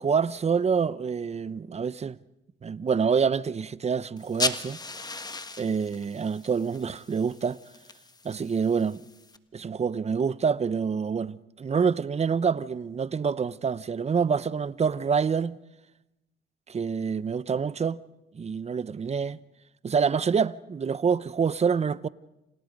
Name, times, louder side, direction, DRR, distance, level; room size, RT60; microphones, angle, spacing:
voice 1, 0.0-2.2 2.6-4.8 5.6-7.6 8.2-9.1 9.5-15.6 16.7-18.0 18.3-19.4 19.8-22.1, right 6 dB, 35° right, 0.8 m, -26 dB
sound 1, 4.2-9.4, left 3 dB, 20° left, 1.4 m, -36 dB
29.5 x 28.0 x 5.3 m
cardioid pair, 90°, 20 cm